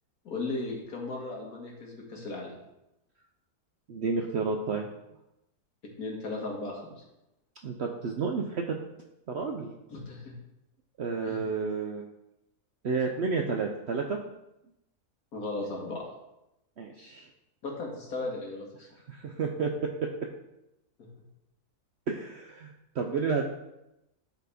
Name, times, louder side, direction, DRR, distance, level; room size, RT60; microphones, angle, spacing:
voice 1, 0.3-2.5 6.0-6.9 9.9-10.3 11.3-11.4 15.3-16.1 17.6-18.9, left 2 dB, 70° left, -1 dB, 1.9 m, -36 dB
voice 2, 3.9-4.9 7.6-8.8 9.3-9.7 11.0-12.1 12.8-14.2 16.8-17.3 19.1-20.1 22.1-23.5, right 4 dB, 65° right, 2 dB, 0.7 m, -31 dB
10.0 x 4.1 x 3.5 m, 0.89 s
omnidirectional pair, 1.7 m